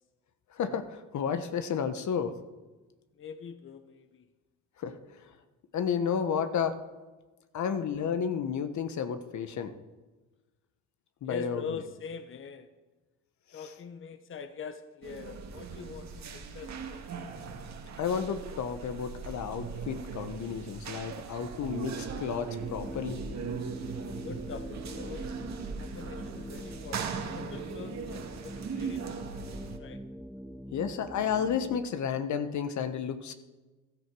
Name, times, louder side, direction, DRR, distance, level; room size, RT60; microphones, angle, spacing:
voice 1, 0.5-2.4 4.8-5.0 5.7-6.8 7.5-9.7 11.2-11.8 13.5-13.6 18.0-23.2 30.7-33.3, left 7 dB, 60° left, 10 dB, 1.3 m, -32 dB
voice 2, 3.2-4.3 11.2-12.7 13.5-17.1 24.2-25.3 25.8-29.2 29.4-30.0, left 5 dB, 40° left, 10 dB, 1.0 m, -43 dB
sound 1, 15.0-29.8, right 5 dB, 55° right, 2.0 m, -39 dB
sound 2, 22.6-31.8, equal, ahead, 0.8 m, -43 dB
15.5 x 13.0 x 4.8 m, 1.2 s
supercardioid pair, 75°, 33 cm